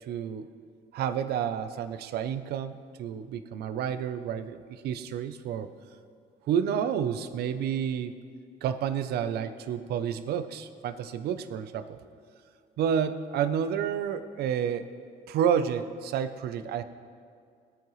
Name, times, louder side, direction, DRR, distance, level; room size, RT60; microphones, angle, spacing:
voice 1, 0.1-0.5 0.9-5.7 6.5-8.2 8.6-12.0 12.8-14.9 15.3-16.8, right 8 dB, 70° right, 11 dB, 0.7 m, -30 dB
18.0 x 8.7 x 3.2 m, 2.2 s
cardioid pair, 110°, 17 cm